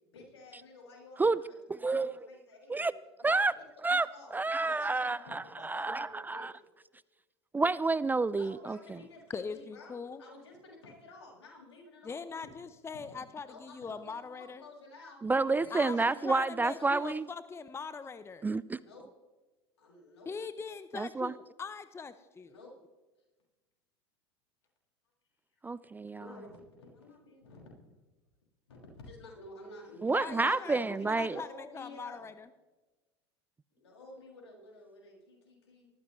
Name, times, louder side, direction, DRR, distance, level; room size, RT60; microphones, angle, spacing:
voice 1, 0.1-1.5 1.8-2.9 3.2-3.5 3.9-6.5 8.3-9.9 10.2-12.3 13.4-16.4 16.7-17.0 18.7-19.1 19.8-20.3 22.5-22.7 23.1-23.2 25.5-25.6 26.1-27.6 28.7-32.3 33.7-35.9, left 2 dB, 80° left, -2 dB, 6.3 m, -51 dB
voice 2, 1.8-2.2 2.7-2.9 3.2-3.5 3.8-4.1 4.3-6.5 7.5-8.8 15.2-17.3 18.4-18.8 20.9-21.3 25.6-26.2 30.0-31.4, right 3 dB, 15° right, 19 dB, 0.3 m, -29 dB
voice 3, 9.3-10.2 12.0-14.6 15.7-18.4 20.3-22.5 30.1-32.5, left 5 dB, 20° left, 13 dB, 0.7 m, -41 dB
20.0 x 14.5 x 3.2 m, 1.1 s
hypercardioid pair, 80°, 14 cm